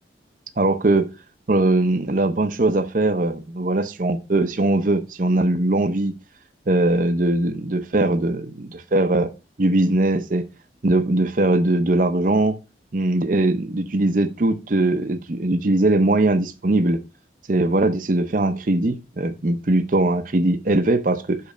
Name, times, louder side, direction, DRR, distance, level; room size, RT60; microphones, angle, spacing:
voice 1, 0.6-1.1 1.5-6.1 6.7-9.3 9.6-10.4 10.8-12.6 12.9-17.0 17.5-21.4, right 2 dB, 45° right, 0.7 m, -20 dB
6.0 x 5.3 x 5.0 m
head